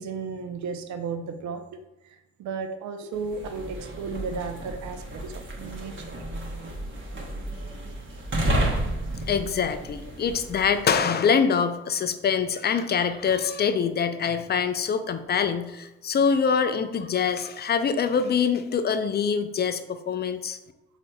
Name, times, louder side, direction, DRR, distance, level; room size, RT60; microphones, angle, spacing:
voice 1, 0.0-1.6 2.4-6.2, right 5 dB, 55° right, 6 dB, 0.6 m, -34 dB
sound 1, 3.2-11.0, right 1 dB, 35° right, 1.0 m, -32 dB
voice 2, 9.3-20.6, left 6 dB, 30° left, 10 dB, 0.4 m, -24 dB
4.2 x 4.0 x 2.2 m, 0.94 s
hypercardioid pair, 50°, 34 cm